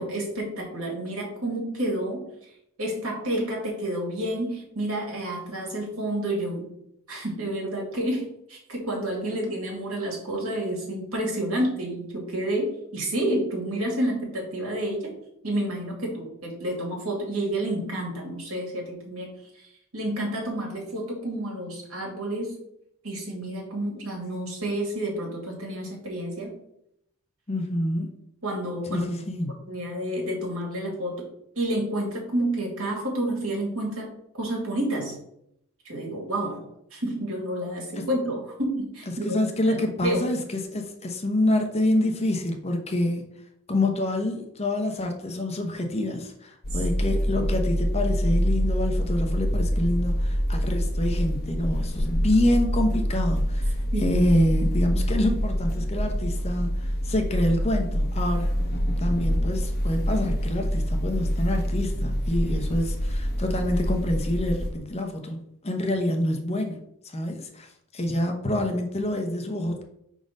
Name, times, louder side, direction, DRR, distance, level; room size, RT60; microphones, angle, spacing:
voice 1, 0.0-2.2 2.8-6.6 7.1-15.1 15.4-19.7 19.9-22.6 23.0-26.5 28.4-29.1 29.7-31.2 31.6-34.1 34.3-35.2 35.8-36.6 36.9-40.2 53.9-54.2, right 1 dB, 70° right, -1 dB, 2.2 m, -29 dB
voice 2, 27.5-28.1 28.9-29.5 39.2-43.2 43.7-58.5 59.0-66.8 67.0-69.8, left 1 dB, 30° left, 3 dB, 0.8 m, -27 dB
sound 1, 46.6-64.7, equal, 45° left, 1.1 m, -26 dB
5.3 x 3.8 x 5.2 m, 0.76 s
head